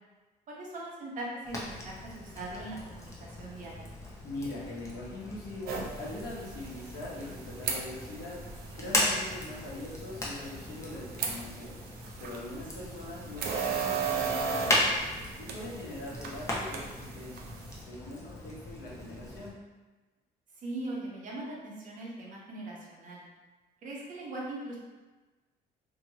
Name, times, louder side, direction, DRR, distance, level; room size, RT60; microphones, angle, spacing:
voice 1, 0.5-3.8 20.6-23.2 23.8-24.8, right 2 dB, 50° right, -4 dB, 0.9 m, -40 dB
Fire, 1.4-19.5, left 1 dB, 15° left, 0.7 m, -37 dB
voice 2, 4.2-8.4 8.7-11.8 12.2-15.0 15.4-17.5 17.8-19.6, left 2 dB, 70° left, -6 dB, 1.1 m, -42 dB
sound 1, 5.7-17.8, right 5 dB, 65° right, 0.5 m, -37 dB
2.9 x 2.5 x 2.9 m, 1.2 s
cardioid pair, 110°, 17 cm